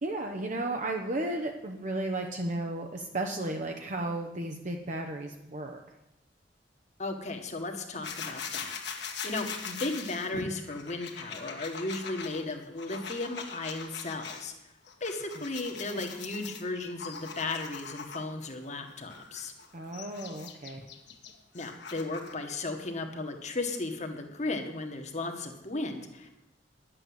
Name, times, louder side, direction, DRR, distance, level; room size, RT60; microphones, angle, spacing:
voice 1, 0.0-5.8 15.9-16.1 19.7-20.8, right 2 dB, 45° right, 3 dB, 0.9 m, -34 dB
voice 2, 7.0-8.8 9.2-14.7 15.0-19.5 21.5-26.3, left 2 dB, 40° left, 4 dB, 1.7 m, -35 dB
sound 1, 8.0-14.4 14.8-18.5 19.0-22.4, left 5 dB, 75° left, 1.6 m, -42 dB
11.0 x 7.8 x 7.9 m, 0.90 s
head